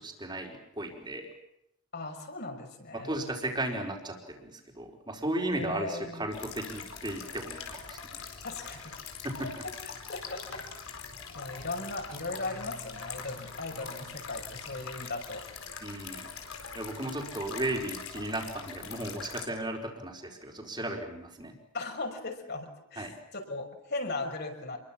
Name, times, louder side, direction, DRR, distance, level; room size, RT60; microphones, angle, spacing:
voice 1, 0.0-1.3 2.9-8.2 9.2-9.5 15.8-16.3 16.7-21.5 23.0-23.1, right 1 dB, 20° right, 1 dB, 4.6 m, -35 dB
voice 2, 1.9-3.1 5.5-6.3 8.4-9.0 9.4-9.5 10.1-10.6 11.3-15.4 21.7-23.1 23.3-24.8, left 2 dB, 55° left, 3 dB, 5.8 m, -37 dB
sound 1, 6.3-19.5, left 6 dB, 90° left, 4.6 m, -43 dB
28.0 x 23.0 x 7.4 m, 0.81 s
head